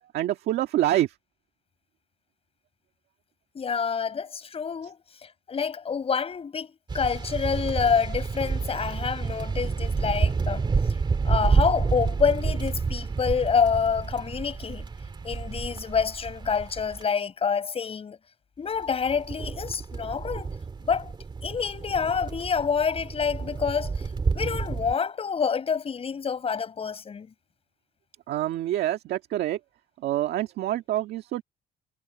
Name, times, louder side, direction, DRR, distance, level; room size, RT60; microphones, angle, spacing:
voice 1, 0.1-1.1 28.3-29.6 30.0-31.4, right 13 dB, 75° right, 1.9 m, -26 dB
voice 2, 3.5-6.7 6.9-10.7 11.2-14.9 15.2-18.2 18.6-20.5 20.9-21.1 21.4-23.9 24.3-27.3, left 6 dB, 35° left, 7.8 m, -27 dB
sound 1, 6.9-17.0 18.8-24.9, right 4 dB, 25° right, 2.4 m, -29 dB
cardioid pair, 110°, 17 cm